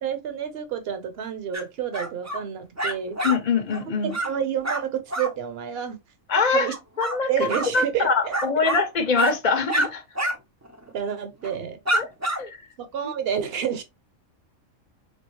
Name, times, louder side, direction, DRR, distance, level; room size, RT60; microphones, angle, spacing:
voice 1, 0.0-3.2 3.9-6.0 6.5-6.7 7.3-8.3 10.9-11.8 12.8-13.8, right 8 dB, 50° right, 1.0 m, -29 dB
sound 1, 1.5-1.6 1.9-2.4 2.8-3.4 3.7-3.8 4.1-4.3 4.6-4.8 5.1-5.3 6.6-7.2 7.5-7.7 8.3-8.9 9.1-9.4 9.7-9.9 10.2-10.4 10.7-10.8 11.4-11.6 11.9-12.4, right 1 dB, 20° right, 0.5 m, -27 dB
voice 2, 3.2-4.2 6.3-6.7 7.0-7.5 7.7-10.0 11.9-12.1 12.4-12.6, left 4 dB, 40° left, 0.7 m, -23 dB
3.6 x 3.5 x 2.9 m
omnidirectional pair, 1.4 m